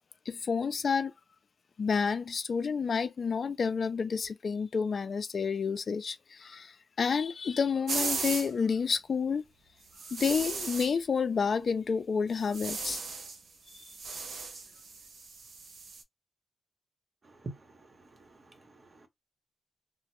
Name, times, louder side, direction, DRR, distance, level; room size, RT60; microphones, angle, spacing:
voice 1, 0.3-1.1 1.8-9.4 10.1-13.0 13.7-13.8, left 5 dB, 65° left, 0.3 m, -30 dB
sound 1, 7.9-8.5 9.9-10.9 12.4-13.4 13.7-16.0, right 4 dB, 80° right, 0.5 m, -36 dB
voice 2, 17.2-19.1, right 2 dB, 50° right, 0.9 m, -47 dB
2.1 x 2.0 x 2.9 m
cardioid pair, 65°, 0 cm